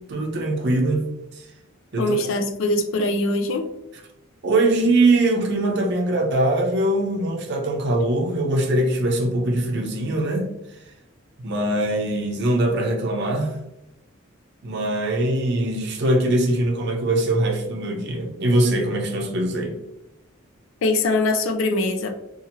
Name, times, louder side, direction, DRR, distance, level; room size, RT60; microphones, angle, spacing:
voice 1, 0.1-1.1 1.9-2.2 4.4-10.5 11.4-13.6 14.6-19.8, right 1 dB, 55° right, 2 dB, 0.6 m, -22 dB
voice 2, 2.0-3.7 20.8-22.1, left 2 dB, 70° left, 5 dB, 0.4 m, -22 dB
2.8 x 2.5 x 2.8 m, 0.89 s
head